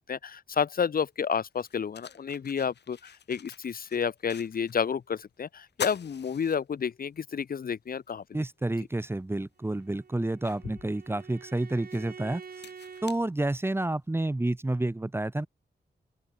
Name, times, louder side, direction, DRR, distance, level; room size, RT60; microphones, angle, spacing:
voice 1, 0.0-8.2, left 7 dB, 55° left, 0.8 m, -30 dB
sound 1, 0.9-1.0 1.5-4.9 5.2-5.3 5.7-7.2 7.6-7.7 9.1-9.2 9.8-14.0, left 7 dB, 80° left, 2.0 m, -44 dB
voice 2, 8.3-12.4 13.0-15.5, right 2 dB, 15° right, 0.9 m, -29 dB
Bowed string instrument, 9.6-13.2, right 6 dB, 60° right, 3.1 m, -47 dB
open air
wide cardioid pair, 105°, 17 cm